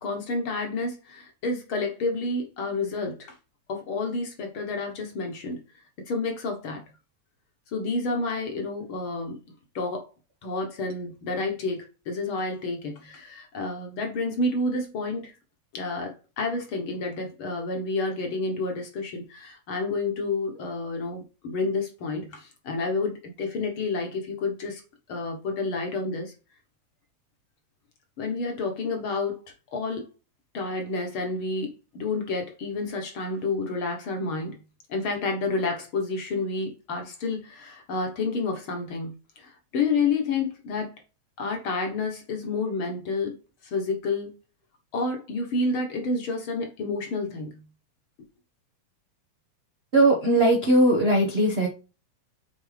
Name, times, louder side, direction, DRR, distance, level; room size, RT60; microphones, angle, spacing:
voice 1, 0.0-3.3 3.7-5.6 6.1-6.8 7.7-9.4 9.8-10.1 10.4-15.3 15.7-24.8 25.1-26.3 28.2-29.4 29.7-30.1 30.5-34.6 34.9-40.9 41.4-43.4 43.6-44.3 44.9-47.6, left 3 dB, 55° left, 1.7 m, -29 dB
voice 2, 49.9-51.7, right 1 dB, 70° right, 0.5 m, -19 dB
7.9 x 4.1 x 3.3 m
omnidirectional pair, 3.3 m